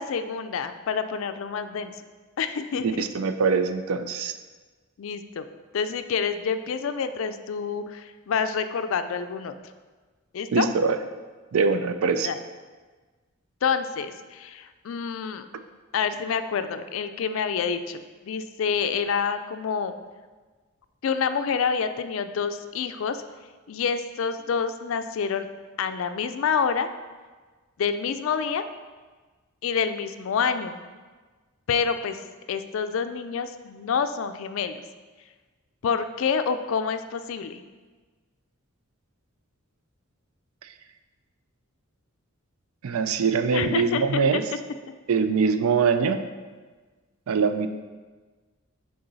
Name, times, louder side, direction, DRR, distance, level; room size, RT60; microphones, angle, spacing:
voice 1, 0.0-1.9 2.4-3.0 5.0-5.5 5.7-9.6 10.3-10.7 12.2-12.4 13.6-15.5 15.9-19.9 21.0-23.2 23.7-25.5 25.8-26.9 27.8-28.6 29.6-30.8 31.7-32.2 32.5-34.8 35.8-37.6 43.5-44.4, left 6 dB, 65° left, 10 dB, 0.4 m, -27 dB
voice 2, 2.8-4.3 10.5-11.0 11.5-12.3 42.8-44.5 45.1-46.2 47.3-47.7, right 5 dB, 80° right, 10 dB, 0.4 m, -23 dB
6.7 x 3.9 x 4.0 m, 1.4 s
head